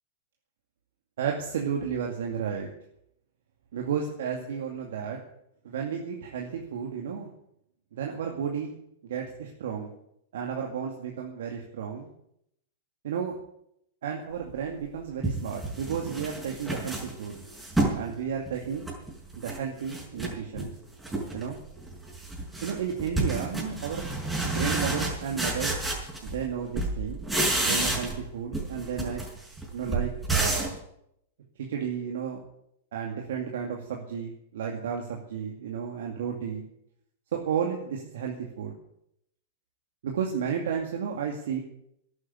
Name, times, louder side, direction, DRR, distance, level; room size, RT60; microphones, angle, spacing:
voice 1, 1.2-2.7 3.7-5.2 5.6-7.3 7.9-8.7 9.0-9.9 10.3-12.1 13.0-13.4 14.0-17.4 17.9-18.9 19.4-20.7 21.3-21.6 22.6-24.1 24.4-25.8 26.3-27.2 27.6-29.2 29.7-30.8 31.6-32.4 32.9-36.7 37.3-38.8 40.0-41.6, right 7 dB, 75° right, 1 dB, 2.3 m, -32 dB
sound 1, 14.6-14.7 15.2-18.0 18.5-19.6 19.9-20.7 21.0-21.5 21.8-26.5 26.7-28.3 28.5-30.8, right 2 dB, 5° right, 5.5 m, -30 dB
11.5 x 9.6 x 9.6 m, 0.76 s
hypercardioid pair, 115°, 0 cm